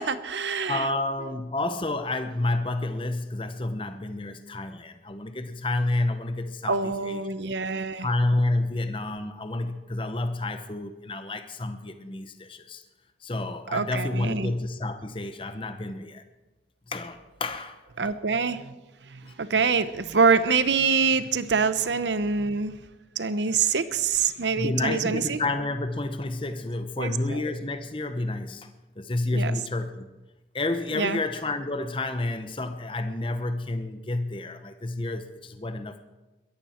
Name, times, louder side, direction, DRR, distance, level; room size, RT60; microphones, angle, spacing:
voice 1, 0.0-0.9 6.7-8.1 13.7-14.5 18.0-18.7 19.1-22.8 23.2-25.4 27.0-27.4 29.3-29.5 30.9-31.2, right 5 dB, 90° right, 13 dB, 0.8 m, -25 dB
voice 2, 0.7-7.2 8.0-12.8 13.2-16.2 16.9-18.1 19.2-19.3 24.6-28.7 29.0-30.1 30.5-36.0, left 2 dB, 30° left, 8 dB, 0.9 m, -30 dB
22.0 x 14.0 x 4.4 m, 1.1 s
head